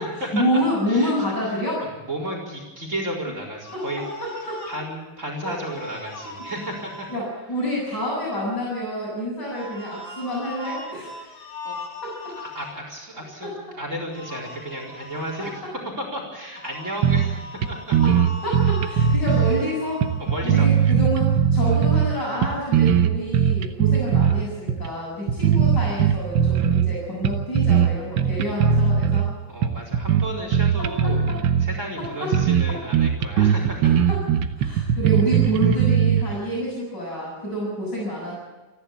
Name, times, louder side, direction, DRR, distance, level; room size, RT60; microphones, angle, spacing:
voice 1, 0.0-1.8 3.7-4.6 5.4-5.5 7.1-11.1 12.0-12.3 13.4-13.8 15.4-15.7 18.0-18.1 18.4-20.0 20.4-29.3 30.8-31.4 32.0-32.3 32.7-32.8 33.4-33.5 33.8-34.2 34.6-38.4, equal, 60° left, -6 dB, 7.7 m, -28 dB
voice 2, 2.1-4.0 4.7-7.1 11.4-11.7 12.4-15.5 16.0-18.0 20.2-20.9 29.5-33.9, right 1 dB, 40° right, 0 dB, 4.8 m, -33 dB
sound 1, 3.6-4.9 5.6-7.2 9.5-12.7 14.1-15.6 16.6-20.6, left 2 dB, 90° left, 3.3 m, -39 dB
sound 2, 17.0-17.4 17.6-17.7 17.9-19.6 20.0-22.1 22.4-24.3 24.7-24.9 25.3-26.9 27.2-27.9 28.2-29.2 29.6-31.7 32.0-32.1 32.3-32.7 32.9-36.2, right 8 dB, 80° right, 1.8 m, -19 dB
28.5 x 11.5 x 8.5 m, 1.2 s
omnidirectional pair, 2.1 m